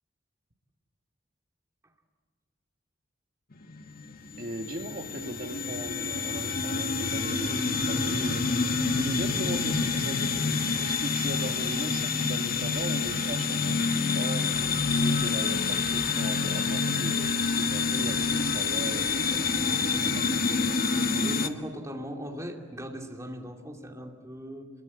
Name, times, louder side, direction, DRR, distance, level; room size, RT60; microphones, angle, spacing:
sound 1, 3.5-21.5, left 4 dB, 50° left, 1.4 m, -27 dB
voice 1, 4.4-8.4 8.9-14.5 14.9-19.5, right 1 dB, 45° right, 3 dB, 2.3 m, -38 dB
voice 2, 19.6-20.4 21.2-24.7, equal, 15° right, 1 dB, 2.6 m, -39 dB
27.0 x 22.5 x 8.6 m, 1.5 s
head